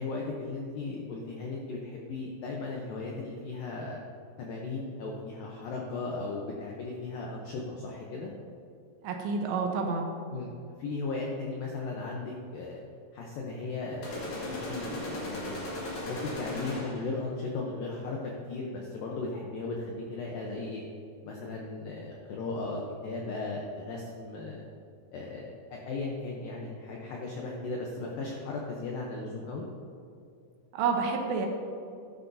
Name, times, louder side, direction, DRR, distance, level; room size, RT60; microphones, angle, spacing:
voice 1, 0.0-4.0 4.4-8.3 10.3-10.5 10.8-12.8 13.1-15.6 16.0-20.8 21.2-24.6 25.1-29.7, left 3 dB, 80° left, -1 dB, 2.0 m, -36 dB
voice 2, 9.0-10.1 30.7-31.5, right 5 dB, 80° right, 2 dB, 3.1 m, -29 dB
sound 1, 14.0-17.2, left 1 dB, 50° left, 3.1 m, -37 dB
12.5 x 9.9 x 2.7 m, 2.4 s
omnidirectional pair, 5.2 m